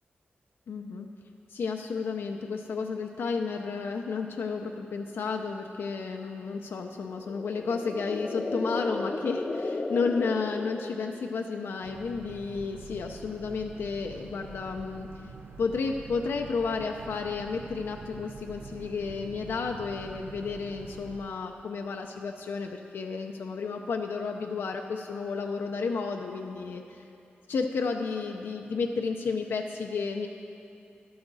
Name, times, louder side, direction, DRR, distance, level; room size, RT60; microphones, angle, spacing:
voice 1, 0.7-1.1 1.5-15.1 15.6-27.0 27.5-30.3, left 4 dB, 85° left, 3 dB, 0.5 m, -32 dB
sound 1, 7.0-11.4, left 2 dB, 25° left, 0.6 m, -34 dB
Boat Water vehicle, 11.8-21.2, right 5 dB, 80° right, 0.6 m, -46 dB
12.5 x 11.5 x 4.0 m, 2.7 s
wide cardioid pair, 155°, 4 cm